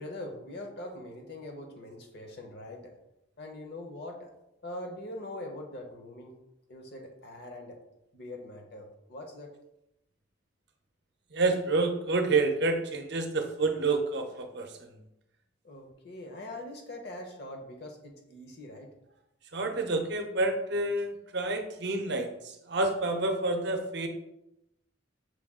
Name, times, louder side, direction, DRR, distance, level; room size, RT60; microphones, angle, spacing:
voice 1, 0.0-2.9 3.4-4.3 4.6-6.4 6.7-7.8 8.1-9.5 15.6-18.9, left 1 dB, 55° left, 3 dB, 0.8 m, -42 dB
voice 2, 11.3-14.9 19.5-24.1, right 3 dB, 60° right, 5 dB, 0.6 m, -29 dB
6.1 x 2.3 x 3.6 m, 0.86 s
head